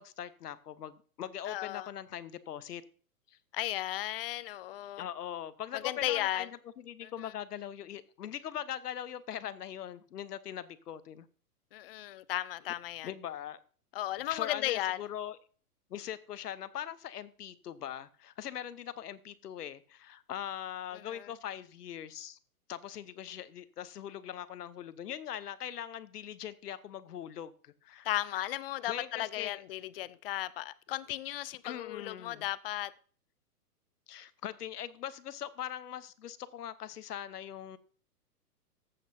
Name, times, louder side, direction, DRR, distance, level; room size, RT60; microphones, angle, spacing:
voice 1, 0.0-2.8 3.3-3.4 5.0-6.5 6.8-11.3 13.0-13.6 14.3-15.4 15.9-22.4 22.7-28.5 28.9-29.6 31.6-32.4 34.1-37.8, left 10 dB, 75° left, 1.0 m, -41 dB
voice 2, 1.5-1.9 3.5-5.0 5.7-6.5 7.0-7.3 11.7-13.1 13.9-15.0 20.9-21.3 28.0-32.9, left 14 dB, 40° left, 0.5 m, -35 dB
14.0 x 7.8 x 2.7 m
hypercardioid pair, 125°, 47 cm